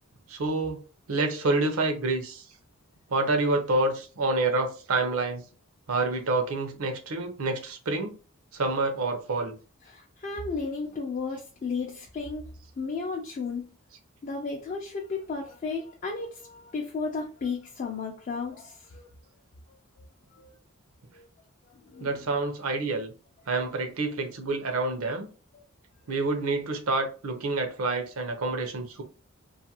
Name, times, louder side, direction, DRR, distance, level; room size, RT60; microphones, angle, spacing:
voice 1, 0.3-0.8 1.1-2.4 3.1-5.4 5.9-8.2 8.5-9.6 22.0-23.1 23.5-25.3 26.1-29.0, right 2 dB, 75° right, 0.6 m, -28 dB
voice 2, 9.9-12.5 12.8-13.7 14.2-19.1 20.3-20.5 21.1-21.3 21.7-22.2 25.5-25.6, left 4 dB, 40° left, 0.4 m, -34 dB
2.5 x 2.4 x 2.8 m
head